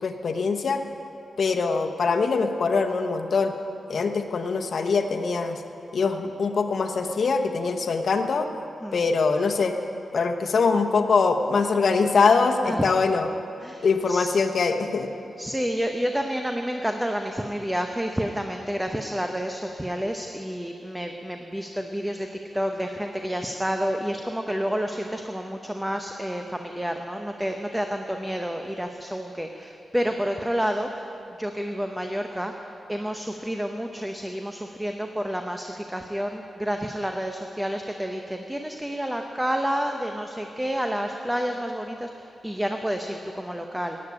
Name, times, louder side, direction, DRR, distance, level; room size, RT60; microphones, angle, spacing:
voice 1, 0.0-0.8 1.4-3.5 3.9-5.6 5.9-8.5 8.9-9.7 10.1-13.3 13.8-15.1, left 4 dB, 65° left, 5 dB, 0.9 m, -23 dB
voice 2, 13.6-14.3 15.4-22.3 22.5-31.1 31.4-32.5 32.9-44.0, equal, 5° right, 4 dB, 0.8 m, -29 dB
11.5 x 8.6 x 8.4 m, 2.7 s
cardioid pair, 60°, 0 cm